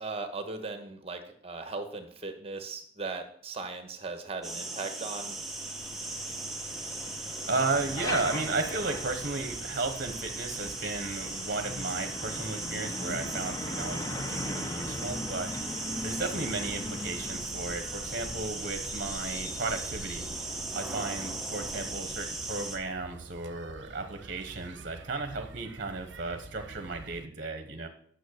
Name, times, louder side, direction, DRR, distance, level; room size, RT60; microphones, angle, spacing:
voice 1, 0.0-5.4, right 3 dB, 35° right, 6 dB, 1.3 m, -38 dB
sound 1, 4.4-22.8, right 2 dB, ahead, 1.2 m, -38 dB
Truck, 5.1-22.8, left 1 dB, 20° left, 1.0 m, -41 dB
voice 2, 7.5-15.5 16.0-20.3 20.7-27.9, right 3 dB, 50° right, 7 dB, 1.1 m, -34 dB
sound 2, 7.7-27.3, right 3 dB, 75° right, 0.7 m, -49 dB
9.3 x 6.5 x 6.5 m, 0.62 s
head